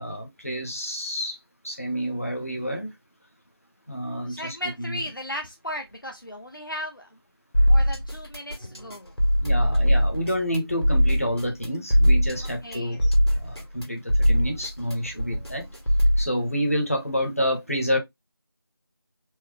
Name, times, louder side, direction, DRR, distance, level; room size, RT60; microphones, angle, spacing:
voice 1, 0.0-1.4 1.6-2.9 3.9-5.0 9.4-15.7 16.2-18.0, equal, 35° left, 1.1 m, -29 dB
voice 2, 4.3-7.2 7.6-9.1 12.6-13.0, left 1 dB, 55° left, 0.8 m, -36 dB
sound 1, 7.5-16.3, equal, 85° left, 2.1 m, -21 dB
4.5 x 2.2 x 3.4 m
figure-of-eight pair, 180°, 13 cm